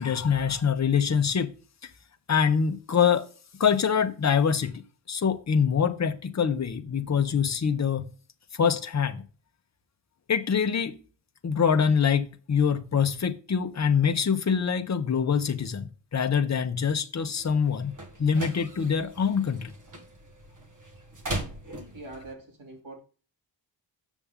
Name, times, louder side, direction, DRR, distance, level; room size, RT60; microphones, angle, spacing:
voice 1, 0.0-1.5 2.3-3.3 3.6-8.0 8.5-9.2 10.3-11.0 11.4-19.7, left 7 dB, 35° left, 0.8 m, -25 dB
sound 1, 17.4-22.3, right 1 dB, 40° right, 1.4 m, -39 dB
voice 2, 21.9-23.0, right 2 dB, 80° right, 2.8 m, -43 dB
7.2 x 6.9 x 3.6 m
wide cardioid pair, 165°, 47 cm